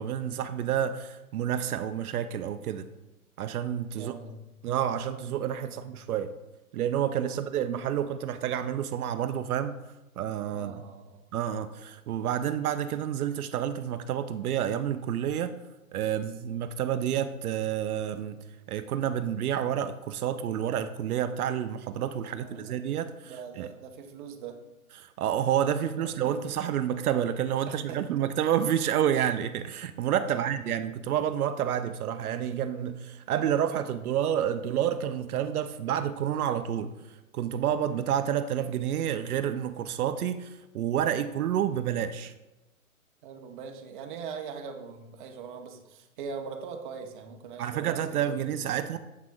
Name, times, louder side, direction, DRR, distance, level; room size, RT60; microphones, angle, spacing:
voice 1, 0.0-2.9 3.4-4.1 4.6-6.3 6.7-9.7 10.2-10.8 11.3-15.5 15.9-18.4 18.7-23.7 25.0-42.3 47.6-49.0, right 9 dB, 80° right, 10 dB, 0.5 m, -29 dB
voice 2, 4.0-4.4 5.7-5.8 7.3-7.4 10.5-11.4 22.3-22.7 23.2-24.6 26.0-26.3 27.7-28.0 30.2-30.5 43.2-48.8, right 6 dB, 35° right, 4 dB, 0.7 m, -42 dB
7.4 x 6.0 x 2.2 m, 0.99 s
hypercardioid pair, 140°, 44 cm